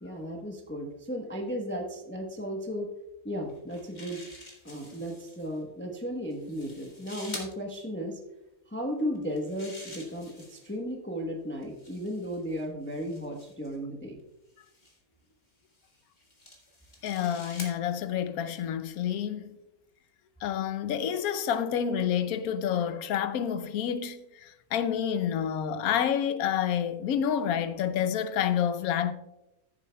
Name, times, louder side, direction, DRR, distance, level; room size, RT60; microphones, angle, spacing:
voice 1, 0.0-2.9 3.2-4.2 4.6-8.2 8.7-14.2, equal, 10° left, 0.9 m, -35 dB
sound 1, 3.5-5.5 6.3-7.5 9.1-10.8 11.6-13.8 14.6-15.0 15.7-17.8, left 1 dB, 30° left, 1.9 m, -47 dB
voice 2, 17.0-19.6 20.4-29.1, left 9 dB, 75° left, 1.1 m, -29 dB
14.5 x 7.4 x 2.3 m
omnidirectional pair, 1.5 m